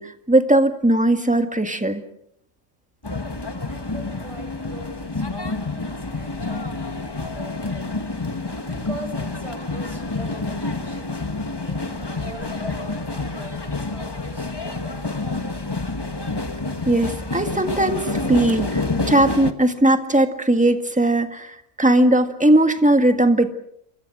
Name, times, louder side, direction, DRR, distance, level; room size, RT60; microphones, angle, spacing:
voice 1, 0.0-2.0 16.8-23.5, right 1 dB, 5° right, 7 dB, 1.7 m, -19 dB
sound 1, 3.0-19.5, left 3 dB, 20° left, 1.3 m, -28 dB
voice 2, 3.7-7.9 8.6-11.2 11.6-16.0, right 1 dB, 25° right, 5 dB, 5.5 m, -41 dB
28.0 x 24.0 x 6.3 m, 0.73 s
omnidirectional pair, 1.4 m